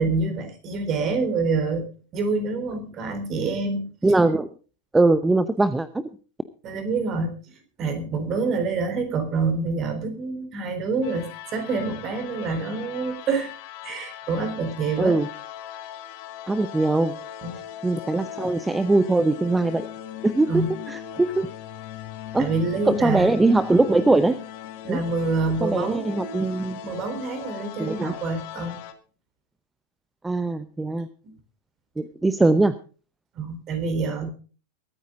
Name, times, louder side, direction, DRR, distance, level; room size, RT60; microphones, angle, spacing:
voice 1, 0.0-1.9 2.1-3.9 6.6-7.3 7.8-13.5 13.8-15.2 17.4-17.6 20.5-20.7 22.4-23.3 24.8-26.4 26.8-28.8 33.3-34.3, right 4 dB, 30° right, 8 dB, 4.0 m, -26 dB
voice 2, 4.0-4.5 4.9-5.9 15.0-15.3 16.5-17.2 17.8-19.8 20.2-20.5 20.9-21.5 22.3-22.5 22.9-24.4 24.9-25.0 25.6-26.8 27.8-28.1 30.2-31.1 32.0-32.7, right 2 dB, 10° right, 14 dB, 0.8 m, -21 dB
sound 1, 11.0-28.9, left 10 dB, 50° left, 2.1 m, -39 dB
22.5 x 9.5 x 3.8 m, 0.38 s
figure-of-eight pair, 90°, 0 cm